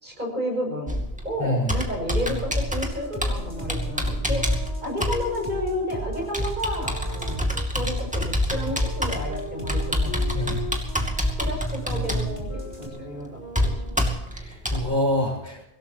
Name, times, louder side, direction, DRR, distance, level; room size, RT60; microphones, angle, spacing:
voice 1, 0.0-4.5 4.8-10.6 11.4-14.2, left 1 dB, 50° right, 1 dB, 6.6 m, -32 dB
Computer keyboard, 0.9-14.8, equal, 5° right, 2.4 m, -27 dB
voice 2, 1.4-1.7 10.3-10.7 14.3-15.6, left 1 dB, 15° left, -5 dB, 6.7 m, -26 dB
Wind instrument woodwind instrument, 1.9-7.7 8.5-14.3, left 2 dB, 45° left, 2.7 m, -40 dB
sound 1, 2.9-12.9, right 1 dB, 30° right, 4.0 m, -35 dB
24.5 x 17.5 x 3.0 m, 0.88 s
omnidirectional pair, 1.0 m